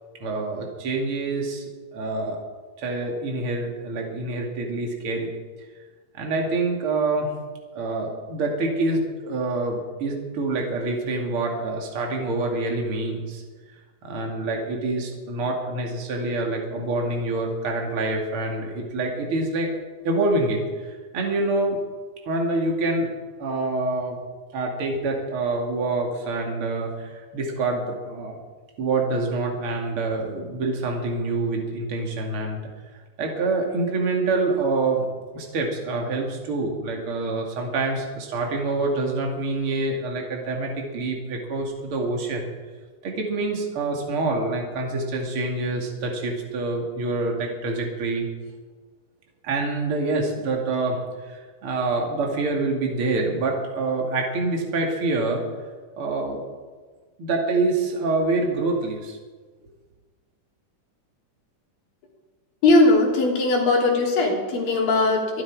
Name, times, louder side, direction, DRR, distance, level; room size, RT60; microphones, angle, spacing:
voice 1, 0.2-2.4 2.8-5.3 6.1-7.3 7.7-13.4 14.0-21.8 22.3-23.1 23.4-24.2 24.5-28.4 28.8-32.6 33.2-35.1 35.3-42.5 43.0-48.3 49.4-55.4 56.0-56.4 57.2-59.2, right 2 dB, 40° right, 0 dB, 3.0 m, -26 dB
voice 2, 62.6-65.4, left 2 dB, 90° left, -1 dB, 4.8 m, -19 dB
24.0 x 12.0 x 4.9 m, 1.4 s
omnidirectional pair, 3.9 m